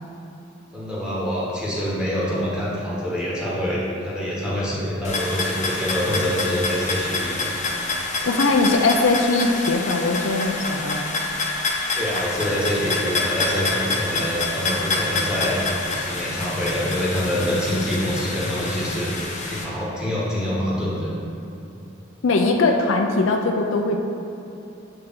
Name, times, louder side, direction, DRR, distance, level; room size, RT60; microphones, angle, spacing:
voice 1, 0.7-7.5 11.9-19.1 19.4-21.1, equal, 5° right, -8 dB, 1.4 m, -25 dB
sound 1, 5.0-19.6, left 3 dB, 35° left, 0.8 m, -27 dB
voice 2, 8.2-11.1 22.2-24.0, left 3 dB, 70° left, 3 dB, 0.5 m, -20 dB
7.5 x 4.8 x 3.7 m, 2.8 s
head